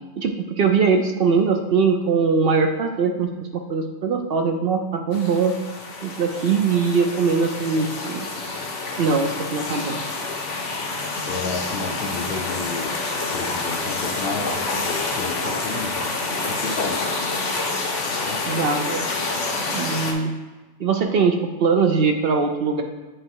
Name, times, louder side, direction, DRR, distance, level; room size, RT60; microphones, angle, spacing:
voice 1, 0.2-5.5 6.0-8.3 9.0-10.0 18.5-19.0 19.7-20.3 20.8-22.8, right 5 dB, 60° right, 4 dB, 0.7 m, -21 dB
sound 1, 5.1-20.1, left 3 dB, 80° left, 1.2 m, -28 dB
voice 2, 11.2-12.9 13.3-17.0 18.2-19.0, left 4 dB, 60° left, 4 dB, 0.8 m, -31 dB
7.6 x 3.1 x 4.6 m, 1.2 s
omnidirectional pair, 1.2 m